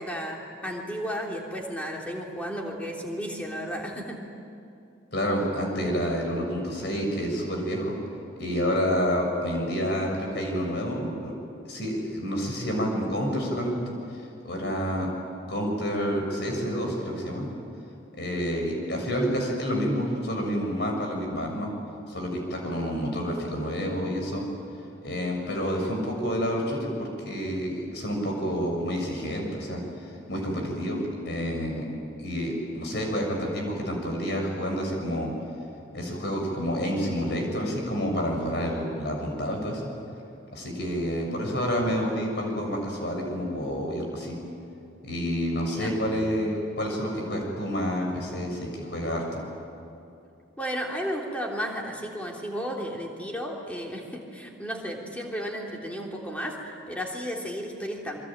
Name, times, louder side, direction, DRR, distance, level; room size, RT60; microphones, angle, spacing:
voice 1, 0.0-4.2 45.6-45.9 50.6-58.2, equal, 5° left, -1 dB, 3.4 m, -33 dB
voice 2, 5.1-8.0 8.4-11.3 11.7-15.1 15.5-17.5 18.1-21.7 22.1-24.5 25.0-31.9 32.2-35.3 35.9-39.8 40.5-44.4 45.0-49.4, equal, 55° left, 1 dB, 6.9 m, -29 dB
27.5 x 24.0 x 9.1 m, 2.7 s
head